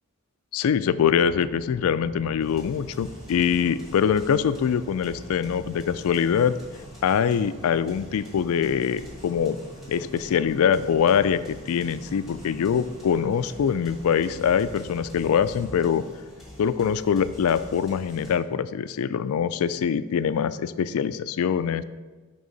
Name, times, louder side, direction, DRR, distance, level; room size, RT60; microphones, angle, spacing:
voice 1, 0.5-6.6 7.0-9.6 9.9-16.0 16.6-21.8, left 7 dB, 90° left, 14 dB, 0.3 m, -23 dB
sound 1, 1.3-15.7, right 1 dB, 25° right, 1.1 m, -46 dB
sound 2, 2.4-18.4, left 1 dB, ahead, 2.1 m, -46 dB
10.5 x 3.6 x 3.9 m, 1.3 s
head